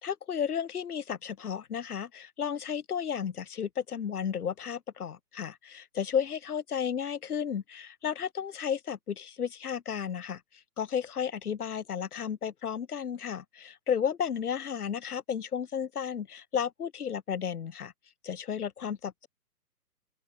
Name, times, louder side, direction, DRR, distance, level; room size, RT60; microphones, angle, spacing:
voice 1, 0.0-10.4 10.8-17.9 18.2-19.3, left 7 dB, 65° left, 0.9 m, -33 dB
open air
figure-of-eight pair, 130°, 48 cm